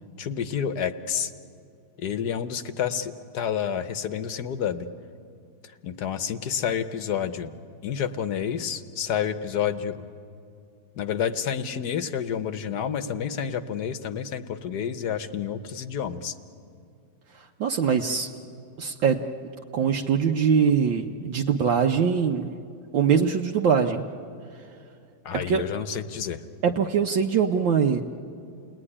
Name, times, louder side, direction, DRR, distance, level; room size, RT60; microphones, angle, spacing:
voice 1, 0.2-1.3 2.0-4.9 5.6-7.5 7.8-10.1 11.0-16.3 25.2-26.4, left 8 dB, 60° left, 10 dB, 1.3 m, -29 dB
voice 2, 17.6-18.3 18.8-19.2 19.7-22.5 22.9-24.0 25.3-25.6 26.6-28.0, right 6 dB, 70° right, 2 dB, 1.6 m, -22 dB
29.5 x 20.0 x 9.9 m, 2.5 s
omnidirectional pair, 2.2 m